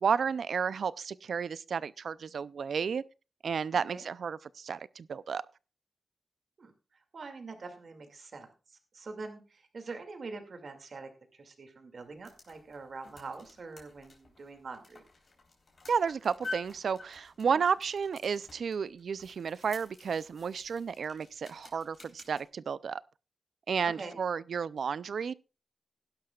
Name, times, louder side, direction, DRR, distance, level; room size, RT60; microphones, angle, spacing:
voice 1, 0.0-3.0 3.4-5.4 15.9-23.0 23.7-25.3, right 6 dB, 85° right, 0.4 m, -32 dB
voice 2, 6.6-15.0 17.5-17.6 23.8-24.2, right 3 dB, 65° right, 2.3 m, -45 dB
sound 1, 12.0-22.4, left 3 dB, 55° left, 3.8 m, -49 dB
17.0 x 11.5 x 2.4 m
wide cardioid pair, 105°, 0 cm